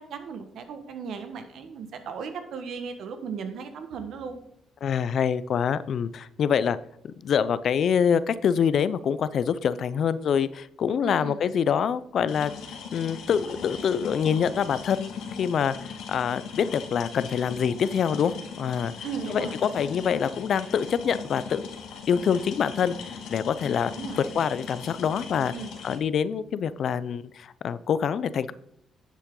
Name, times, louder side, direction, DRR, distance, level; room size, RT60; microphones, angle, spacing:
voice 1, 0.1-4.4 11.0-11.4 19.0-19.6 23.9-24.4 25.5-25.7, right 6 dB, 70° right, 8 dB, 1.4 m, -36 dB
voice 2, 4.8-6.8 7.0-12.5 12.9-21.6 22.1-23.9 24.2-25.5 25.8-28.5, left 7 dB, 60° left, 16 dB, 0.5 m, -25 dB
sound 1, 12.3-26.0, left 6 dB, 85° left, 1.6 m, -39 dB
10.5 x 7.4 x 3.8 m, 0.74 s
cardioid pair, 90°, 0 cm